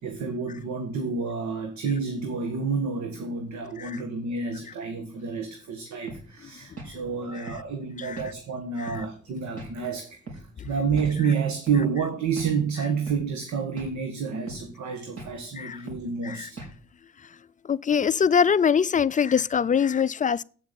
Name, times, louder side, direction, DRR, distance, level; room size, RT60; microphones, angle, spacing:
voice 1, 0.0-16.6, right 5 dB, 70° right, 1.7 m, -29 dB
sound 1, 6.1-6.3 6.8-7.0 7.5-7.7 8.2-8.3 8.9-9.1 9.6-9.7 10.3-10.5 11.0-11.2 11.7-11.8 12.4-12.5 13.1-13.2 13.8-14.0 14.5-14.7 15.2-15.3 15.9-16.1 16.6-16.8, right 3 dB, 50° right, 4.7 m, -39 dB
voice 2, 17.6-20.4, left 7 dB, 25° left, 0.4 m, -23 dB
8.7 x 7.0 x 6.9 m
cardioid pair, 90°, 30 cm